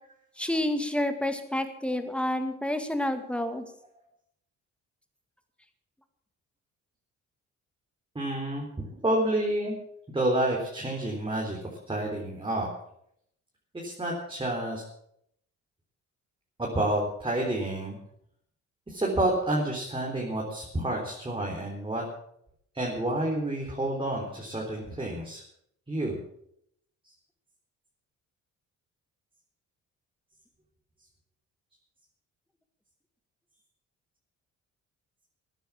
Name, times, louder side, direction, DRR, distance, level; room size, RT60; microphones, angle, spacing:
voice 1, 0.4-3.6, left 1 dB, 5° left, 8 dB, 2.1 m, -29 dB
voice 2, 8.1-9.8 10.1-11.6 11.9-12.7 13.8-14.8 16.6-18.0 18.9-22.0 22.7-25.4 25.9-26.2, right 1 dB, 15° right, -2 dB, 3.9 m, -29 dB
15.0 x 10.5 x 7.2 m, 0.72 s
cardioid pair, 90°, 30 cm